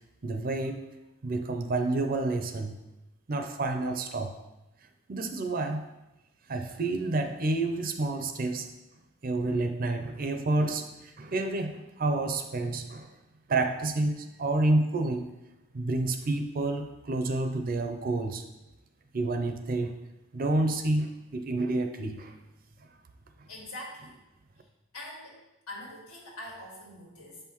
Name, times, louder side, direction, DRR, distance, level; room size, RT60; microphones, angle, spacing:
voice 1, 0.2-0.9 1.2-2.7 3.3-4.3 5.1-5.8 6.5-8.7 9.2-13.1 13.5-15.3 15.7-18.4 19.1-20.0 20.3-21.1 21.3-22.3, right 2 dB, 40° right, 6 dB, 0.5 m, -29 dB
voice 2, 23.5-24.2 24.6-24.7 24.9-25.4 25.7-27.4, left 1 dB, 80° left, -3 dB, 1.8 m, -43 dB
6.6 x 5.6 x 3.0 m, 0.99 s
head